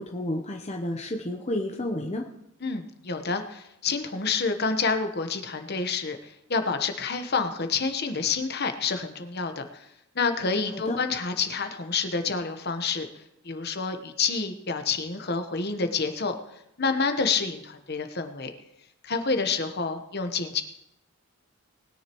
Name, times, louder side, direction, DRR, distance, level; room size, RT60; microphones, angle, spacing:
voice 1, 0.0-2.3 10.9-11.0, left 1 dB, 30° left, 2 dB, 0.8 m, -30 dB
voice 2, 2.6-9.8 10.1-13.1 13.4-16.3 16.8-18.5 19.0-20.6, left 4 dB, 50° left, 7 dB, 1.1 m, -28 dB
20.5 x 10.0 x 3.1 m, 0.83 s
head